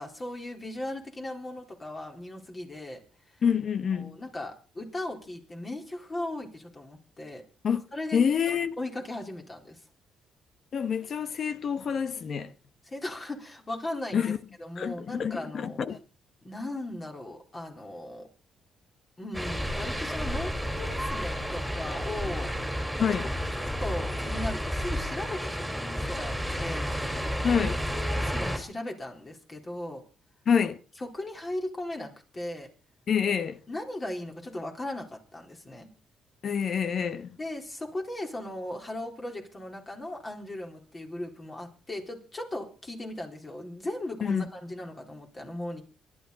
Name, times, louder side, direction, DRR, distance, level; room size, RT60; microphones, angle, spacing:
voice 1, 0.0-3.0 4.0-7.4 7.9-8.2 8.8-9.8 12.8-14.3 14.6-15.8 16.4-18.3 19.2-22.5 23.8-26.3 26.6-30.0 31.0-32.7 33.7-35.9 37.4-45.8, left 1 dB, 25° left, 4.2 m, -37 dB
voice 2, 3.4-4.2 7.6-7.8 8.1-8.7 10.7-12.5 14.1-14.4 14.8-16.0 23.0-23.3 27.4-27.7 30.5-30.8 33.1-33.6 36.4-37.3 44.2-44.5, left 7 dB, 55° left, 1.2 m, -27 dB
sound 1, 19.3-28.6, equal, ahead, 4.2 m, -31 dB
23.5 x 11.0 x 4.1 m
cardioid pair, 90°, 0 cm